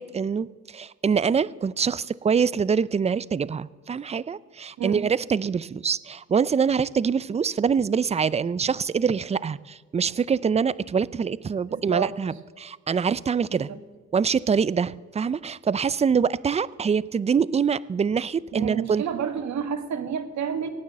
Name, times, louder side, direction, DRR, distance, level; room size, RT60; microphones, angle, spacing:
voice 1, 0.0-13.7 14.1-19.0, right 6 dB, 20° right, 19 dB, 0.4 m, -25 dB
voice 2, 11.7-12.1 13.5-13.8 18.5-20.7, right 7 dB, 65° right, 8 dB, 1.7 m, -30 dB
17.5 x 9.5 x 7.5 m, 1.4 s
cardioid pair, 90°, 30 cm